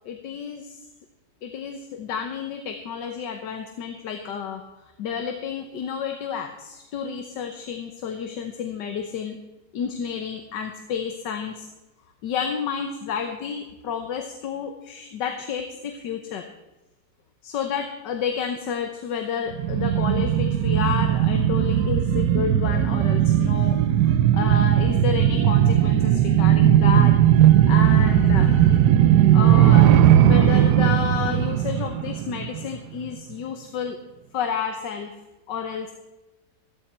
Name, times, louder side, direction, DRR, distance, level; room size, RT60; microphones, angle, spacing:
voice 1, 0.0-0.8 1.4-4.6 5.0-9.4 9.7-11.7 12.2-16.5 17.4-23.8 24.1-28.8 29.3-34.0 34.3-35.1 35.5-35.9, left 7 dB, 85° left, 5 dB, 1.6 m, -30 dB
sound 1, 19.5-32.7 33.1-33.2, right 11 dB, 75° right, 1.2 m, -18 dB
14.0 x 13.0 x 4.4 m, 1.1 s
omnidirectional pair, 1.8 m